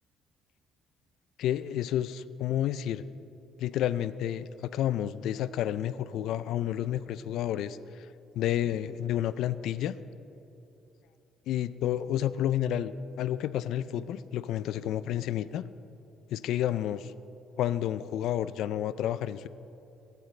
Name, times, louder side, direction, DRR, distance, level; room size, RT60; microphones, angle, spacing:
voice 1, 1.4-3.0 3.6-8.1 8.3-10.0 11.5-15.6 16.3-17.1 17.6-19.5, left 11 dB, 70° left, 15 dB, 0.4 m, -30 dB
17.0 x 16.0 x 3.2 m, 2.9 s
cardioid pair, 155°, 0 cm